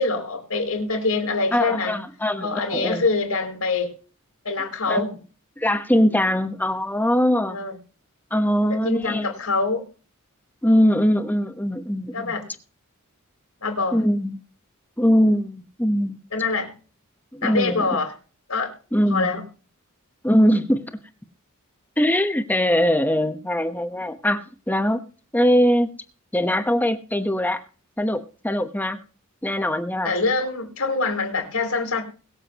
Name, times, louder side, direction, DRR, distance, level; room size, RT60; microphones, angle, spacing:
voice 1, 0.0-2.0 2.4-3.9 4.4-5.1 7.4-7.8 8.7-9.8 12.1-12.5 13.6-14.0 16.3-16.7 17.4-18.1 18.5-18.7 19.1-19.4 30.0-32.0, left 3 dB, 80° left, 4 dB, 4.3 m, -24 dB
voice 2, 1.5-3.1 4.9-5.0 5.6-7.6 8.3-9.3 10.6-12.4 13.9-14.4 15.0-16.2 17.3-17.8 18.9-19.3 20.2-20.8 22.0-25.0 25.3-25.9 26.3-27.6 28.0-29.0 29.4-30.1, equal, 10° left, 8 dB, 1.1 m, -21 dB
22.0 x 7.4 x 3.0 m, 0.38 s
head